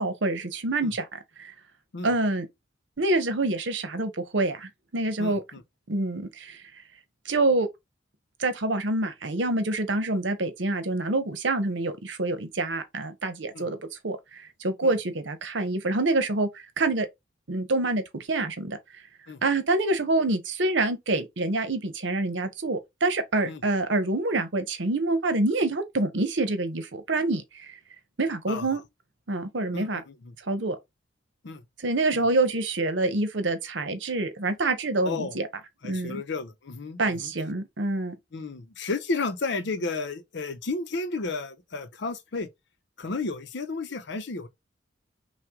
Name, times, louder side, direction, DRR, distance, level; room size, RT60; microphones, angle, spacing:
voice 1, 0.0-1.5 2.0-2.5 3.0-5.4 5.9-6.6 7.3-7.7 8.4-13.8 14.0-17.1 17.5-18.8 19.4-27.7 28.2-28.8 29.3-30.0 30.5-30.8 31.8-35.5 35.8-36.2 37.0-38.1, right 2 dB, 70° right, 0.9 m, -26 dB
voice 2, 5.2-5.6 13.5-13.7 14.8-14.9 19.3-19.4 23.5-23.6 28.5-28.8 29.7-30.4 31.4-31.6 32.1-32.2 35.0-35.4 35.8-37.3 38.3-42.5 43.0-44.5, left 3 dB, 65° left, 0.7 m, -33 dB
5.8 x 2.3 x 3.6 m
head